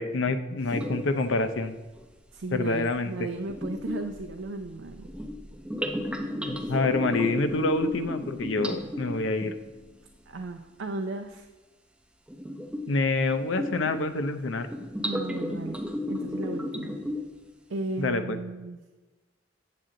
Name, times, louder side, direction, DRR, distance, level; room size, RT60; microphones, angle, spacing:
voice 1, 0.0-1.8 2.5-3.1 6.4-9.5 12.9-14.7 18.0-18.4, left 3 dB, 85° left, 10 dB, 0.6 m, -27 dB
sound 1, 0.6-1.3 1.9-2.0 3.5-9.8 12.3-13.0 13.4-14.2 14.6-17.5, left 1 dB, 5° right, 0.6 m, -34 dB
voice 2, 2.3-5.1 6.6-6.7 10.3-11.5 15.0-15.8 16.1-17.0 17.7-18.8, right 2 dB, 85° right, 5 dB, 0.5 m, -35 dB
7.8 x 7.5 x 3.8 m, 1.2 s
head